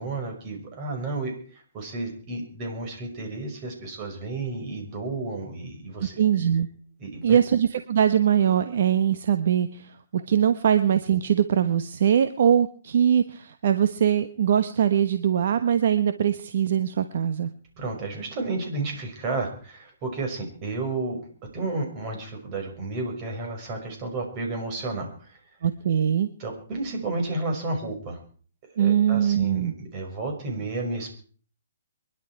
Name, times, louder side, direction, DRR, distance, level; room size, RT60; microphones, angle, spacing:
voice 1, 0.0-6.2 7.0-7.4 17.8-21.2 21.5-25.4 26.4-28.2 28.8-31.1, right 2 dB, 30° right, 3 dB, 5.6 m, -32 dB
voice 2, 6.0-6.7 7.2-17.5 25.6-26.3 28.8-29.7, right 9 dB, 60° right, 10 dB, 1.1 m, -22 dB
24.0 x 11.5 x 4.8 m, 0.43 s
hypercardioid pair, 155°, 0 cm